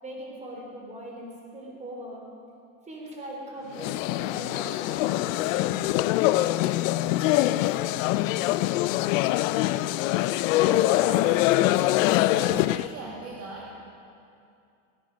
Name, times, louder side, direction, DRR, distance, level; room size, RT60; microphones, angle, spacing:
voice 1, 0.0-2.2 2.9-6.1, right 1 dB, 20° right, -2 dB, 3.6 m, -41 dB
sound 1, 3.7-12.9, left 16 dB, 80° left, 0.5 m, -24 dB
voice 2, 10.7-11.5 12.3-13.8, right 3 dB, 35° right, -4 dB, 2.1 m, -39 dB
18.5 x 10.0 x 5.2 m, 2.5 s
supercardioid pair, 130°, 39 cm